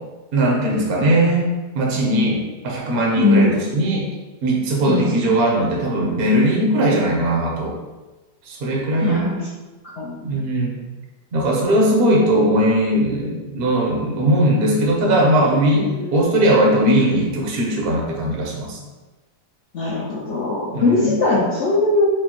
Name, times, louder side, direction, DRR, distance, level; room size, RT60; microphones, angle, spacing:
voice 1, 0.3-1.5 1.7-4.1 4.4-7.8 8.5-9.2 10.2-10.8 11.3-18.8 20.7-21.2, right 1 dB, 60° right, -2 dB, 0.6 m, -19 dB
voice 2, 3.2-3.6 4.9-5.2 9.0-9.4 10.0-10.3 15.8-16.1 19.7-22.1, left 2 dB, 70° left, -5 dB, 0.7 m, -20 dB
4.8 x 2.1 x 2.9 m, 1.2 s
omnidirectional pair, 1.8 m